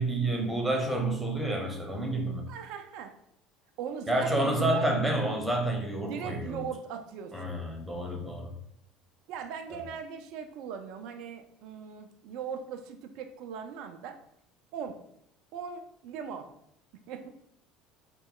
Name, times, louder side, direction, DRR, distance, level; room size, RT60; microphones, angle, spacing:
voice 1, 0.0-2.4 4.1-6.6 7.3-8.5, right 1 dB, 10° right, 1 dB, 0.9 m, -29 dB
voice 2, 2.5-3.1 3.8-4.9 6.0-7.6 9.3-14.2 14.7-15.0 15.5-16.5 17.1-17.3, right 7 dB, 65° right, 6 dB, 0.3 m, -39 dB
3.0 x 2.2 x 3.7 m, 0.74 s
hypercardioid pair, 65°, 0 cm